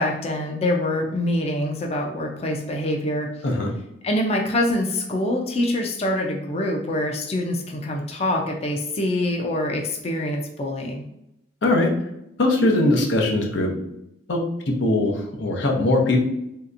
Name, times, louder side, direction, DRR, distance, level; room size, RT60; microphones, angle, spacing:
voice 1, 0.0-3.3 4.0-11.0, left 1 dB, 35° left, 1 dB, 0.4 m, -25 dB
voice 2, 12.4-13.7 14.3-16.2, left 2 dB, 90° left, 0 dB, 0.7 m, -21 dB
3.2 x 2.8 x 2.5 m, 0.83 s
head